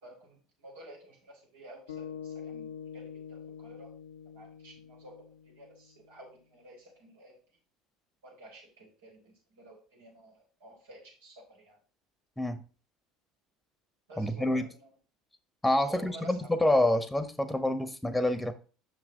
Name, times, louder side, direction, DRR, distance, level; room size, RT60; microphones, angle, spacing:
voice 1, 0.0-2.7 2.9-3.9 4.2-7.4 8.2-11.8 14.1-14.9 15.8-16.5, right 1 dB, 75° right, -2 dB, 3.3 m, -51 dB
sound 1, 1.9-6.3, left 7 dB, 80° left, 0.8 m, -45 dB
voice 2, 14.2-14.7 15.6-18.5, left 1 dB, 5° left, 11 dB, 1.1 m, -27 dB
6.6 x 6.2 x 3.8 m, 0.36 s
figure-of-eight pair, 65°, 0 cm